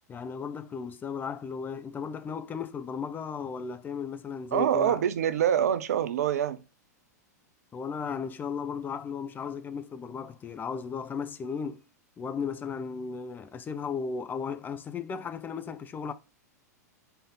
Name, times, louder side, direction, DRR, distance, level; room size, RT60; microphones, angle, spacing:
voice 1, 0.1-5.0 7.7-11.8 12.2-16.1, left 6 dB, 20° left, 0.7 m, -35 dB
voice 2, 4.5-6.6, right 9 dB, 60° right, 0.6 m, -25 dB
5.3 x 4.4 x 5.4 m
figure-of-eight pair, 95°, 9 cm